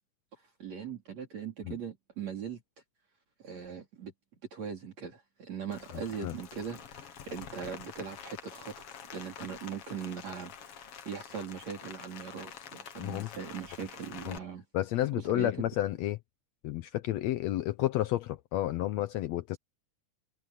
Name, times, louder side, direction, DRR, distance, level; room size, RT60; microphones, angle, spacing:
voice 1, 0.3-2.6 3.4-4.1 4.5-14.6 15.2-15.7, right 7 dB, 60° right, 4.9 m, -40 dB
Rain, 5.7-14.4, left 8 dB, 55° left, 2.2 m, -47 dB
voice 2, 13.0-13.3 14.3-14.4 14.7-16.2 16.6-19.6, left 14 dB, 75° left, 1.7 m, -31 dB
omnidirectional pair, 3.5 m